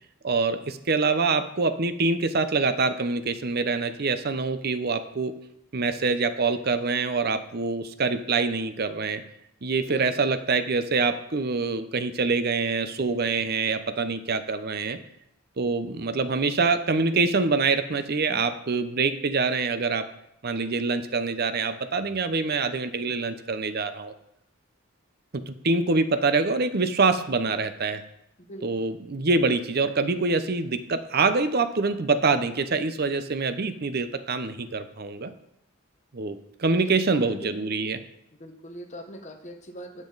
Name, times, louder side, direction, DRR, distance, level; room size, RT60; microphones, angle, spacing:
voice 1, 0.2-5.3 5.7-9.2 9.6-15.0 15.6-20.1 20.4-24.1 25.3-28.0 28.6-35.3 36.1-38.0, right 4 dB, 50° right, 11 dB, 0.7 m, -25 dB
voice 2, 9.8-10.2 28.5-28.9 36.7-37.7 38.4-40.1, right 1 dB, 35° left, 3 dB, 1.1 m, -42 dB
10.5 x 7.6 x 3.9 m, 0.78 s
head